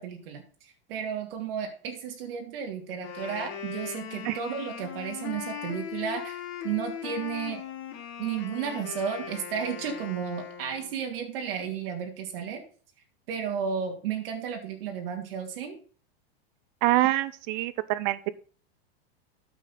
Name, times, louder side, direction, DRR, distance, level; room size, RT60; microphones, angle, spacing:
voice 1, 0.0-7.6 8.2-12.6 13.3-15.8, right 7 dB, 65° right, 3 dB, 2.4 m, -33 dB
Wind instrument woodwind instrument, 2.9-11.0, left 8 dB, 40° left, 3.0 m, -39 dB
voice 2, 16.8-18.3, right 16 dB, 50° right, 17 dB, 0.8 m, -25 dB
9.6 x 7.3 x 4.0 m, 0.40 s
supercardioid pair, 140°, 31 cm